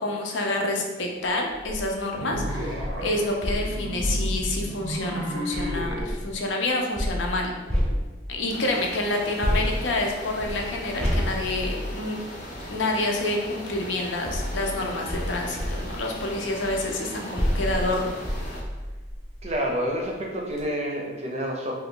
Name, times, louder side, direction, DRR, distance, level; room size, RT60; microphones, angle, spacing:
voice 1, 0.0-7.5 8.3-12.2 12.7-18.2, left 2 dB, 75° left, 1 dB, 0.5 m, -28 dB
sound 1, 1.5-1.8 2.3-6.3 7.0-8.5 9.4-12.8 13.7-19.6 20.1-20.2 20.5-20.6, equal, 5° left, 0.7 m, -30 dB
sound 2, 2.2-6.1, right 1 dB, 80° right, 0.6 m, -33 dB
sound 3, 8.5-18.6, equal, 40° left, 0.7 m, -39 dB
voice 2, 19.4-21.8, equal, 35° right, -1 dB, 0.5 m, -28 dB
2.8 x 2.3 x 3.6 m, 1.2 s
head